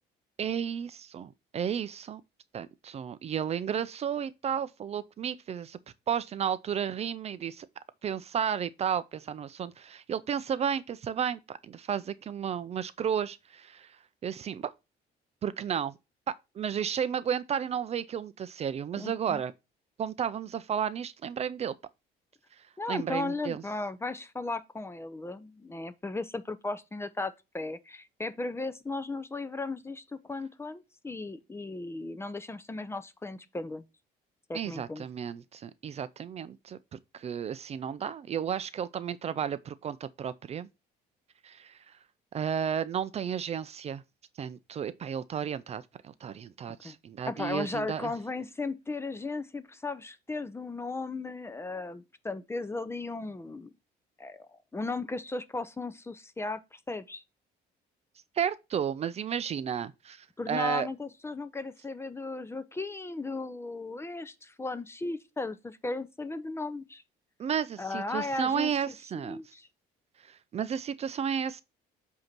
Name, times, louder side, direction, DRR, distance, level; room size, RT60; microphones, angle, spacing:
voice 1, 0.4-2.2 2.5-5.8 6.1-7.7 8.0-14.0 14.2-14.7 15.4-16.0 16.6-19.5 20.0-21.7 22.9-23.6 34.5-40.7 41.4-41.8 42.3-44.0 44.4-48.1 58.4-60.9 67.4-69.4 70.3-71.6, right 8 dB, 40° right, 0.4 m, -33 dB
voice 2, 19.0-19.4 22.8-33.9 34.5-35.0 46.8-47.0 47.3-53.7 54.2-57.2 60.4-67.0 67.8-69.7, left 3 dB, 15° left, 0.5 m, -36 dB
7.8 x 2.8 x 5.9 m
cardioid pair, 110°, 17 cm